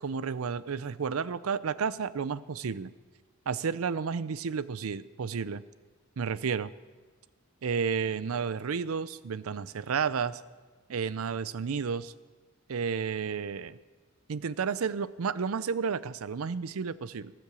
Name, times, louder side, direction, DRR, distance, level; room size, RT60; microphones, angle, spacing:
voice 1, 0.0-2.9 3.5-5.6 6.2-6.7 7.6-10.4 10.9-12.1 12.7-13.8 14.3-17.3, right 6 dB, 85° right, 17 dB, 0.5 m, -31 dB
18.5 x 7.7 x 6.9 m, 1.3 s
head